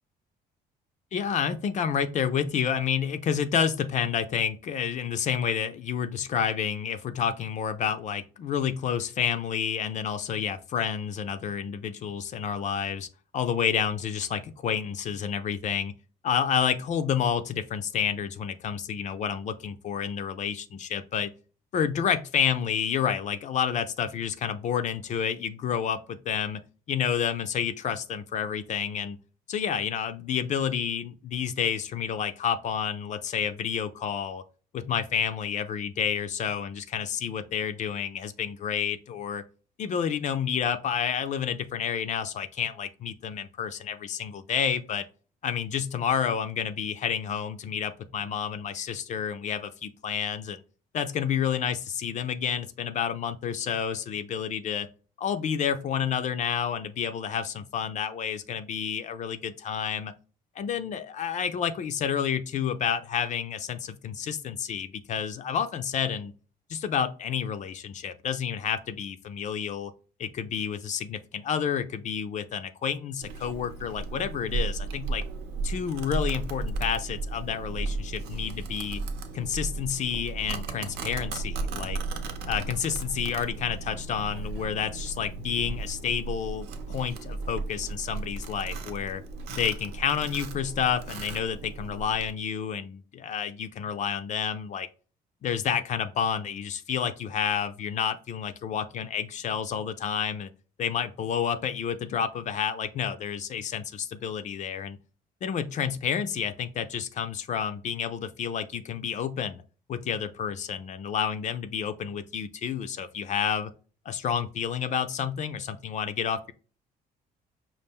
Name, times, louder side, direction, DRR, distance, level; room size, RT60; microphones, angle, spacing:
voice 1, 1.1-13.1 13.3-15.9 16.2-21.3 21.7-26.6 26.9-29.2 29.5-34.4 34.7-39.4 39.8-45.0 45.4-50.6 50.9-54.9 55.2-60.1 60.6-66.3 66.7-69.9 70.2-75.2 75.6-79.0 79.3-82.0 82.5-89.2 89.6-94.9 95.4-100.5 100.8-105.0 105.4-109.6 109.9-113.7 114.1-116.5, left 8 dB, 45° left, 10 dB, 0.4 m, -29 dB
Domestic sounds home sounds, 73.2-92.3, right 3 dB, 80° right, 0.7 m, -35 dB
5.3 x 2.4 x 3.5 m, 0.38 s
cardioid pair, 110°, 17 cm